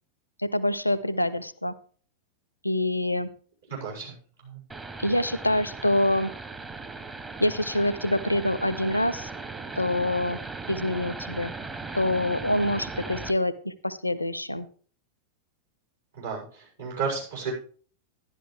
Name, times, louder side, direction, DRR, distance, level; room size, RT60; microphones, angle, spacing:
voice 1, 0.4-1.8 2.6-3.3 5.0-6.3 7.4-9.3 9.8-10.4 10.7-11.5 11.9-14.7, left 1 dB, 85° left, 17 dB, 0.6 m, -26 dB
voice 2, 3.7-4.1 4.4-4.6 16.1-17.5, right 5 dB, 70° right, -2 dB, 6.4 m, -33 dB
sound 1, 4.7-13.3, right 3 dB, 15° right, 0.9 m, -38 dB
12.0 x 11.0 x 3.3 m, 0.44 s
figure-of-eight pair, 90°, 0 cm